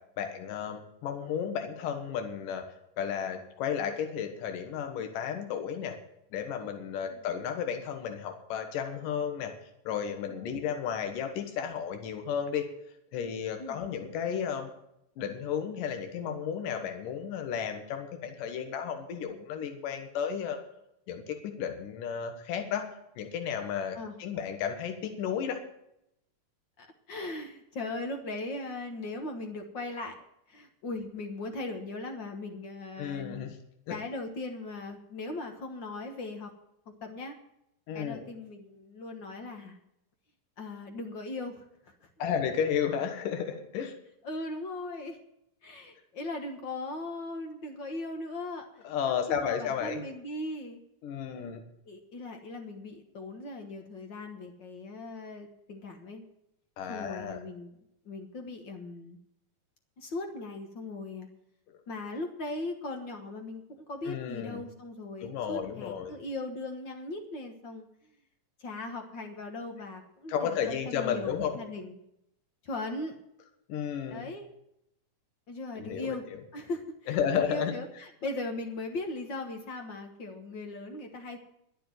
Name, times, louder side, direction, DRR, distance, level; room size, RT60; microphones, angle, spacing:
voice 1, 0.2-2.6 3.0-6.0 6.3-9.5 9.9-12.7 13.1-14.7 15.2-20.6 21.1-22.8 23.2-25.6 33.0-33.6 33.9-34.0 37.9-38.2 42.2-43.9 48.8-50.0 51.0-51.6 56.8-57.4 61.7-61.8 64.1-64.6 65.2-66.1 70.3-71.6 73.7-74.3 75.8-76.2 77.1-77.8, left 8 dB, 80° left, 6 dB, 3.0 m, -33 dB
voice 2, 26.8-33.4 33.9-36.5 37.0-37.4 37.9-39.8 40.6-42.1 44.2-45.2 45.6-50.8 51.9-56.2 56.9-57.7 58.0-59.2 60.0-61.3 61.9-67.8 68.6-72.0 72.6-73.2 74.1-74.5 75.5-76.2 76.5-81.4, left 2 dB, 60° left, 5 dB, 1.2 m, -39 dB
12.0 x 7.8 x 9.3 m, 0.79 s
omnidirectional pair, 3.8 m